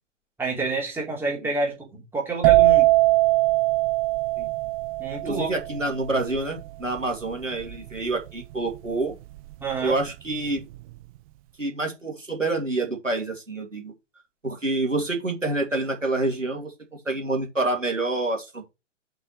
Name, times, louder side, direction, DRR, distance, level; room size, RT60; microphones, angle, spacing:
voice 1, 0.4-2.9 5.0-5.5 9.6-10.0, right 3 dB, 5° right, 3.2 m, -28 dB
sound 1, 2.4-10.0 10.3-10.8, right 19 dB, 30° right, 0.8 m, -22 dB
voice 2, 5.2-9.1 9.8-10.7 11.6-13.9 14.4-18.7, right 2 dB, 90° right, 2.5 m, -27 dB
6.3 x 5.9 x 4.6 m
figure-of-eight pair, 115°, 37 cm